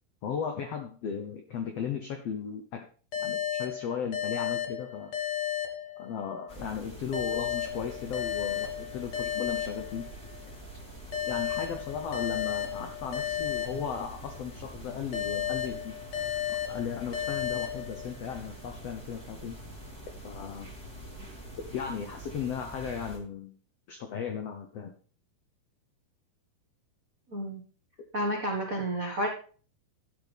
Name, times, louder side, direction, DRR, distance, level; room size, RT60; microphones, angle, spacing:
voice 1, 0.2-2.9 3.2-5.1 6.0-10.1 11.3-16.0 16.5-19.6 20.2-20.7 21.7-23.5 23.9-24.9, left 7 dB, 80° left, 6 dB, 1.4 m, -36 dB
sound 1, 3.1-6.5 7.1-10.4 11.1-14.5 15.1-18.4, left 10 dB, 55° left, 2.6 m, -34 dB
sound 2, 6.5-23.2, right 1 dB, 5° left, 3.3 m, -45 dB
voice 2, 27.3-27.6 28.1-29.3, right 1 dB, 80° right, 0 dB, 0.7 m, -30 dB
12.0 x 11.0 x 3.5 m, 0.42 s
omnidirectional pair, 4.3 m